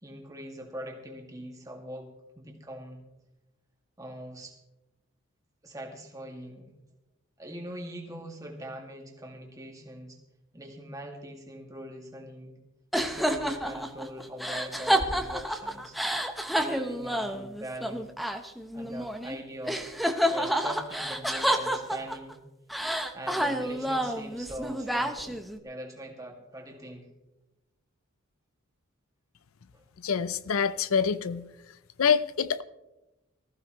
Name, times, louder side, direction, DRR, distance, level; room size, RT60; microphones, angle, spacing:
voice 1, 0.0-3.0 4.0-4.6 5.6-6.7 7.4-10.2 10.5-12.6 13.0-16.0 16.6-18.1 18.7-20.0 20.3-22.4 23.1-27.1 29.7-29.8, right 1 dB, 15° right, 2.1 m, -42 dB
sound 1, 12.9-19.4 19.7-22.3 22.7-25.6, equal, ahead, 0.8 m, -29 dB
voice 2, 30.0-31.4 32.0-32.6, left 6 dB, 75° left, 0.5 m, -26 dB
20.0 x 15.0 x 3.1 m
head